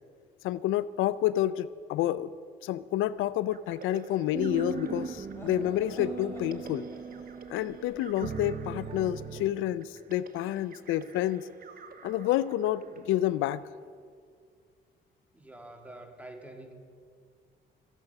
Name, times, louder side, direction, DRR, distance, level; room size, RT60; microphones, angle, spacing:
voice 1, 0.4-2.3 2.6-6.8 7.5-11.5 12.0-13.6, left 13 dB, 85° left, 18 dB, 0.4 m, -29 dB
sound 1, 3.5-14.1, right 5 dB, 45° right, 1.2 m, -51 dB
sound 2, 4.3-9.5, right 5 dB, 30° right, 0.7 m, -38 dB
sound 3, 5.3-9.0, left 1 dB, 10° left, 4.2 m, -50 dB
voice 2, 15.3-16.7, right 1 dB, 5° right, 3 dB, 1.9 m, -46 dB
14.0 x 10.5 x 6.7 m, 2.1 s
cardioid pair, 90°, 20 cm